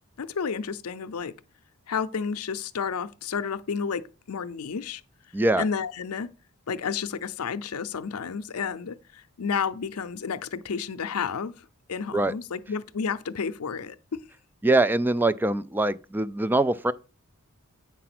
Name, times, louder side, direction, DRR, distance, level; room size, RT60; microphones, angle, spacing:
voice 1, 0.2-1.3 1.9-5.0 5.6-6.3 6.7-14.2, left 6 dB, 85° left, 0.6 m, -31 dB
voice 2, 5.3-5.6 12.1-12.3 14.6-16.9, right 2 dB, 10° right, 0.3 m, -23 dB
8.4 x 4.7 x 6.0 m
head